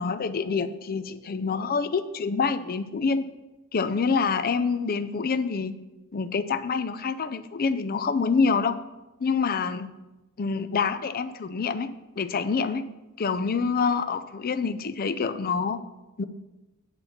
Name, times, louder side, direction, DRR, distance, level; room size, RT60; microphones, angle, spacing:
voice 1, 0.0-3.3 3.7-5.7 6.1-8.8 9.2-9.9 10.4-11.9 12.2-12.8 13.2-15.8 16.2-16.3, left 5 dB, 40° left, 12 dB, 0.5 m, -26 dB
9.6 x 4.3 x 7.0 m, 1.0 s
head